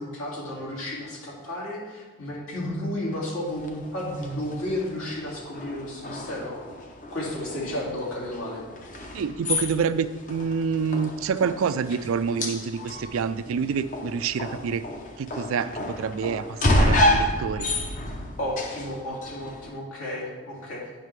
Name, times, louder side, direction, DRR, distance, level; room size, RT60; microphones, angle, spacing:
voice 1, 0.0-6.6 7.1-8.6 18.4-20.8, left 1 dB, 75° left, -5 dB, 2.2 m, -32 dB
sound 1, 3.5-19.7, left 1 dB, 35° left, 0.7 m, -30 dB
voice 2, 9.1-14.8 15.2-17.7, right 6 dB, 70° right, 13 dB, 0.3 m, -27 dB
9.0 x 5.7 x 3.2 m, 1.3 s
head